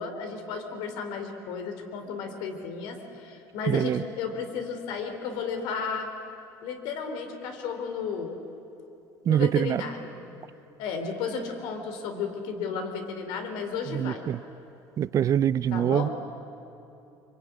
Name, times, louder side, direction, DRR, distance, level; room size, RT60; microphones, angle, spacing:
voice 1, 0.0-6.1 6.6-8.4 9.3-10.2 10.8-14.3 15.7-16.1, left 5 dB, 75° left, 5 dB, 3.7 m, -33 dB
voice 2, 3.7-4.0 9.3-9.8 13.9-14.4 15.0-16.1, right 10 dB, 45° right, 17 dB, 0.6 m, -24 dB
24.5 x 24.0 x 9.6 m, 2.8 s
supercardioid pair, 100°, 8 cm